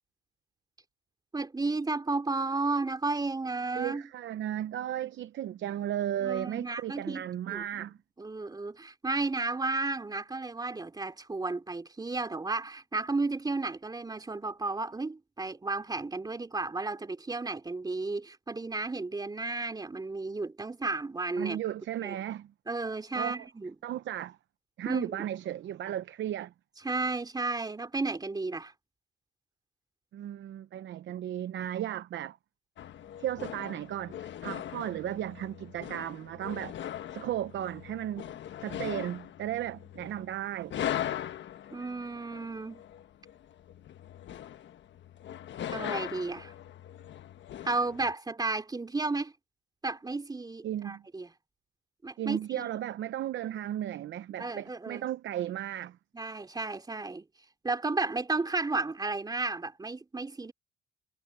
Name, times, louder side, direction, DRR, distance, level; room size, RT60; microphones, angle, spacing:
voice 1, 1.3-4.0 6.2-7.9 8.2-21.6 22.0-22.2 22.7-23.8 24.8-25.2 26.8-28.7 41.7-42.8 45.7-46.5 47.6-49.3 49.8-51.3 52.0-52.7 54.4-55.1 56.1-57.2 57.6-60.5, right 3 dB, 20° right, 2.9 m, -33 dB
voice 2, 3.8-8.0 21.4-22.5 23.1-23.5 23.8-24.4 24.8-26.5 30.1-32.4 33.2-36.7 37.1-38.3 38.6-40.7 50.6-51.0 52.2-56.0, right 11 dB, 70° right, 0.8 m, -35 dB
sound 1, 32.8-48.1, left 10 dB, 65° left, 1.3 m, -40 dB
cardioid pair, 90°, 20 cm